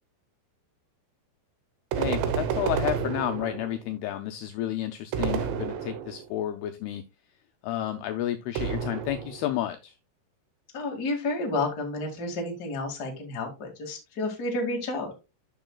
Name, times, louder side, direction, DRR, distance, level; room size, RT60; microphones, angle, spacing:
sound 1, 1.9-3.9 5.1-6.3 8.6-9.5, right 7 dB, 85° right, 3.2 m, -30 dB
voice 1, 2.0-7.0 7.6-10.0, left 12 dB, 85° left, 7 dB, 2.3 m, -31 dB
voice 2, 10.7-15.1, left 2 dB, 35° left, 1 dB, 1.7 m, -31 dB
12.5 x 5.7 x 2.3 m, 0.26 s
omnidirectional pair, 5.1 m